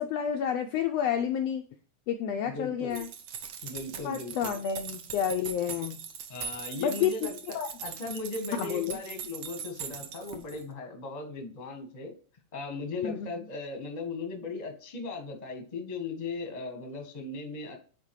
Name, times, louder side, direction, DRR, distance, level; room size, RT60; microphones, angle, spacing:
voice 1, 0.0-1.6 2.1-3.1 4.0-6.0 6.8-7.3 7.5-7.7 8.5-9.0 13.0-13.4, left 8 dB, 90° left, 6 dB, 1.4 m, -30 dB
voice 2, 2.5-3.0 3.6-4.6 6.3-12.1 12.5-17.8, left 3 dB, 35° left, 3 dB, 0.6 m, -38 dB
sound 1, 2.9-10.7, right 7 dB, 70° right, 1.6 m, -41 dB
9.6 x 4.2 x 3.1 m, 0.40 s
omnidirectional pair, 3.5 m